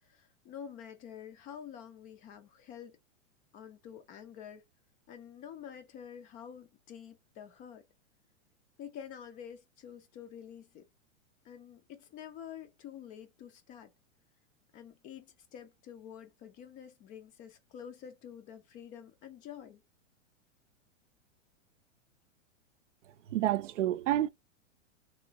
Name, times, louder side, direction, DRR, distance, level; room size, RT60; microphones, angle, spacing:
voice 1, 0.0-3.0 3.5-4.6 5.1-7.8 8.8-10.9 11.4-13.9 14.7-19.8, left 8 dB, 20° left, 0.4 m, -48 dB
voice 2, 23.3-24.3, right 13 dB, 70° right, 0.5 m, -29 dB
3.1 x 3.0 x 2.6 m
hypercardioid pair, 110°, 38 cm